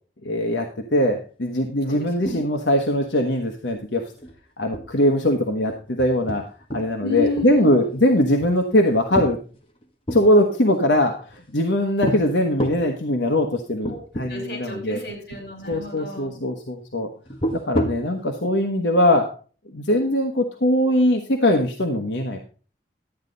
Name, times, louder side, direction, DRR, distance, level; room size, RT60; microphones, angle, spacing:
voice 1, 0.2-4.1 4.6-6.4 6.7-9.4 10.1-15.0 15.7-17.1 17.5-19.4 19.7-22.4, left 1 dB, 90° left, 3 dB, 1.2 m, -21 dB
voice 2, 1.9-2.4 7.0-7.8 13.9-14.0 14.3-16.4, left 3 dB, 65° left, 2 dB, 4.7 m, -30 dB
sound 1, 2.3-2.8 3.0-3.1 3.5-3.8 4.2-4.3 4.7-6.9 7.2-7.9 8.4-10.2 10.9-11.6 12.0-12.2 12.6-12.9 13.4-13.5 13.8-14.3 14.6-14.7 15.3-15.9 17.3-18.1, equal, 30° left, 1.4 m, -29 dB
12.0 x 8.9 x 4.0 m, 0.37 s
head